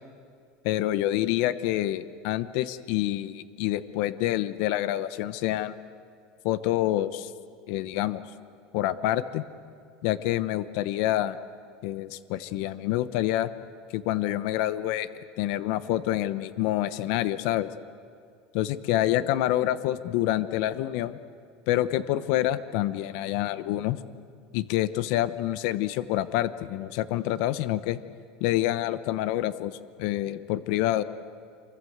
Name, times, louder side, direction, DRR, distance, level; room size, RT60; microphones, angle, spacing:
voice 1, 0.6-5.7 6.4-7.3 7.7-8.2 8.7-9.4 10.0-11.4 11.8-13.5 13.9-15.1 15.4-17.7 18.5-21.2 21.7-24.0 24.5-28.0 28.4-31.0, left 14 dB, 65° left, 14 dB, 0.9 m, -27 dB
27.5 x 24.0 x 8.1 m, 2.2 s
supercardioid pair, 145°, 3 cm